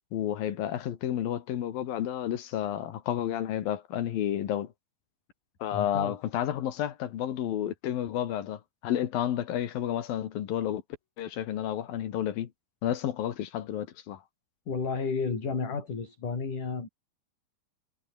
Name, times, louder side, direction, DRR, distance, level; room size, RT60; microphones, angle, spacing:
voice 1, 0.1-4.7 5.6-10.8 11.2-12.5 12.8-14.2, left 11 dB, 70° left, 3.4 m, -31 dB
voice 2, 5.7-6.2 14.7-16.9, left 5 dB, 55° left, 7.0 m, -32 dB
omnidirectional pair, 4.3 m